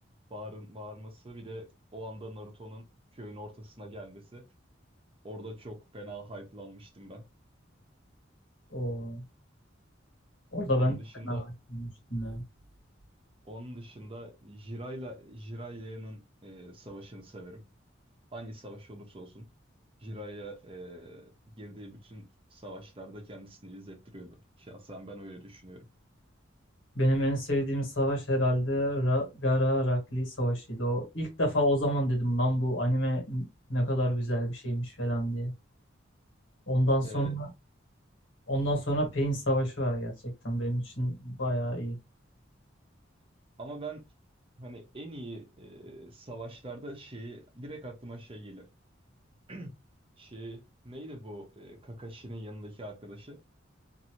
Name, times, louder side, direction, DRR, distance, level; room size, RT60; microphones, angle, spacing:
voice 1, 0.3-2.9 3.1-4.5 5.2-7.2 10.7-11.5 13.4-17.6 18.3-19.5 20.0-21.3 21.6-25.9 37.0-37.3 43.6-44.0 44.6-48.7 49.5-49.8 50.2-53.4, right 1 dB, 30° right, 0.8 m, -43 dB
voice 2, 8.7-9.2 10.5-11.0 11.2-11.4 11.7-12.4 26.9-35.5 36.7-37.5 38.5-40.1 40.4-42.0, equal, 75° left, 1.5 m, -28 dB
2.7 x 2.6 x 2.9 m
head